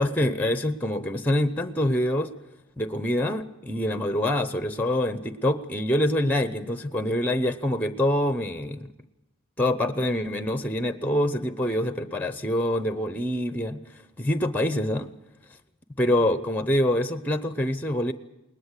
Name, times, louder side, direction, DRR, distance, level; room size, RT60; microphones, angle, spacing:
voice 1, 0.0-2.3 2.8-8.9 9.6-13.8 14.2-15.1 16.0-18.1, left 1 dB, 5° left, 11 dB, 0.7 m, -25 dB
21.0 x 19.5 x 8.2 m, 0.94 s
head